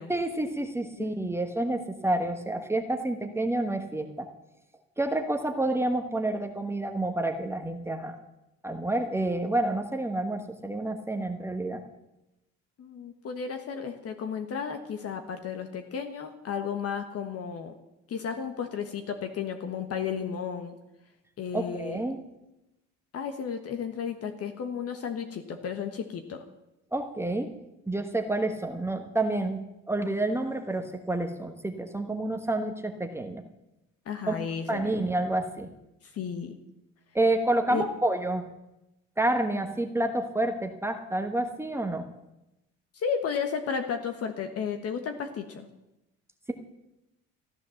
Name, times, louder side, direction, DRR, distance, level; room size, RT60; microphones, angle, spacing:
voice 1, 0.1-4.2 5.0-8.2 8.6-11.8 21.5-22.2 26.9-27.5 27.9-33.4 34.3-34.4 34.7-35.7 37.1-38.4 39.2-42.0, right 2 dB, 10° right, 4 dB, 1.2 m, -29 dB
voice 2, 1.0-1.3 12.8-17.7 18.1-20.8 21.4-22.0 23.1-26.4 34.0-35.0 36.0-36.6 37.7-37.8 42.9-45.7, left 6 dB, 50° left, 6 dB, 1.4 m, -33 dB
14.5 x 10.5 x 7.1 m, 0.92 s
cardioid pair, 125°, 31 cm